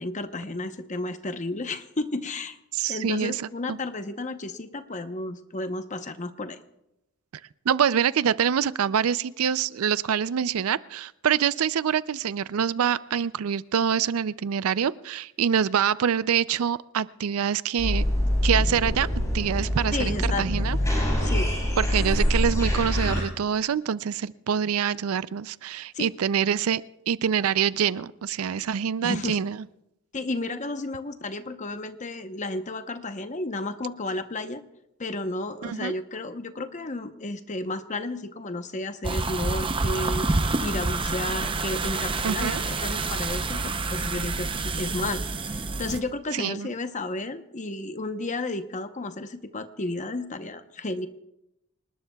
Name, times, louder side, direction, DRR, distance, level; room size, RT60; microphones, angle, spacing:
voice 1, 0.0-2.6 2.9-6.6 19.9-20.5 21.2-21.6 25.9-26.1 29.0-29.4 30.1-34.6 35.0-43.6 43.9-44.5 44.8-51.1, left 2 dB, 35° left, 9 dB, 0.9 m, -32 dB
voice 2, 2.7-3.8 7.7-18.0 18.4-19.1 19.3-20.8 21.8-29.6 35.6-35.9 42.2-42.6 46.3-46.7, right 8 dB, 85° right, 17 dB, 0.4 m, -25 dB
sound 1, 17.8-23.2, equal, 15° left, 6.4 m, -25 dB
sound 2, 39.0-46.0, right 3 dB, 25° right, 0.6 m, -28 dB
27.0 x 19.5 x 2.3 m, 0.87 s
head